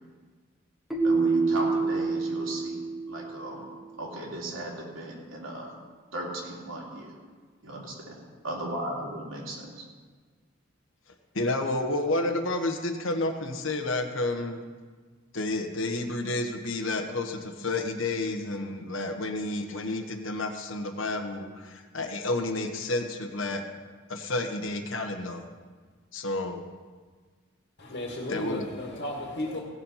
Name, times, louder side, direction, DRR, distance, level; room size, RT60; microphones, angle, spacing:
Keyboard (musical), 0.9-3.7, right 4 dB, ahead, 1.4 m, -27 dB
voice 1, 1.0-2.8 3.1-3.7 4.0-5.7 6.1-7.1 7.6-8.2 8.4-9.8, right 1 dB, 80° right, -3 dB, 3.1 m, -36 dB
voice 2, 11.3-14.6 15.3-23.6 24.1-25.4 26.1-26.6 28.3-28.7, left 2 dB, 70° left, 6 dB, 1.2 m, -30 dB
voice 3, 27.8-29.6, left 1 dB, 50° left, -1 dB, 1.8 m, -34 dB
17.0 x 7.1 x 5.7 m, 1.5 s
head